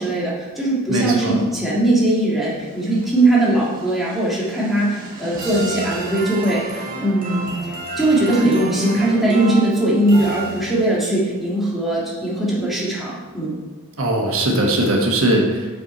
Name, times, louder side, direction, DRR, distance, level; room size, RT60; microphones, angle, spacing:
voice 1, 0.0-13.5, right 1 dB, ahead, -8 dB, 1.7 m, -20 dB
voice 2, 0.9-1.4 14.0-15.8, right 1 dB, 75° right, 0 dB, 1.3 m, -19 dB
sound 1, 2.2-11.1, right 2 dB, 40° right, 1.2 m, -32 dB
6.4 x 6.0 x 4.2 m, 1.4 s
head